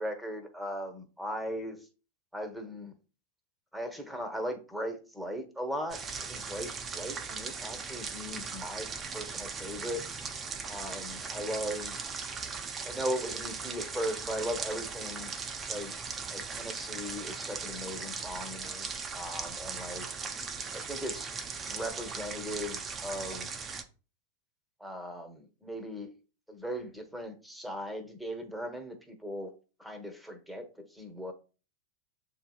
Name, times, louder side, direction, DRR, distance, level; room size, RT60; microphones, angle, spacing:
voice 1, 0.0-1.8 2.3-2.9 3.7-10.0 10.7-12.0 12.8-15.3 15.7-16.0 16.3-18.9 19.1-20.1 20.7-21.3 21.6-23.5 24.8-26.1 26.5-29.5 29.8-31.3, equal, ahead, 1.0 m, -38 dB
sound 1, 5.9-23.8, right 5 dB, 25° right, 0.6 m, -39 dB
7.5 x 2.9 x 2.3 m
hypercardioid pair, 95°, 0 cm